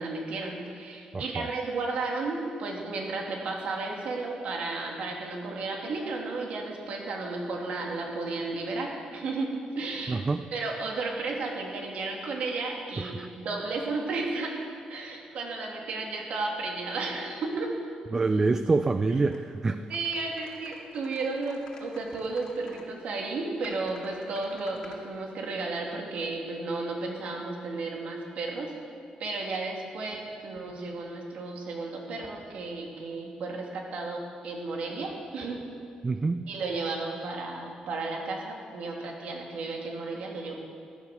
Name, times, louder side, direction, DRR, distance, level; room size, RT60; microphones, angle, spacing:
voice 1, 0.0-10.2 10.5-14.5 14.9-17.7 19.9-28.7 29.2-35.6 36.5-40.6, right 3 dB, 60° right, 0 dB, 2.7 m, -33 dB
voice 2, 1.1-1.5 10.1-10.4 13.0-13.3 18.1-19.8 36.0-36.5, right 3 dB, 20° right, 10 dB, 0.4 m, -26 dB
sound 1, 19.3-19.4 19.9-22.9 23.6-25.0, left 3 dB, 35° left, 2.3 m, -50 dB
15.5 x 12.0 x 6.7 m, 2.3 s
cardioid pair, 165°, 2 cm